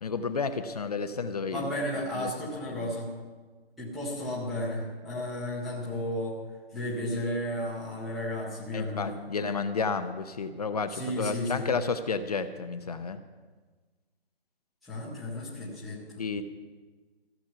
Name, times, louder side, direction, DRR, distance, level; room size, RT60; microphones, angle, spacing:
voice 1, 0.0-1.7 2.2-2.3 8.7-13.2 16.2-16.4, left 4 dB, 40° left, 9 dB, 0.7 m, -31 dB
voice 2, 1.5-3.1 3.8-6.4 6.7-9.2 10.9-11.7 14.8-16.0 16.4-16.5, left 1 dB, ahead, -10 dB, 0.7 m, -33 dB
15.0 x 7.2 x 8.9 m, 1.4 s
hypercardioid pair, 165°, 31 cm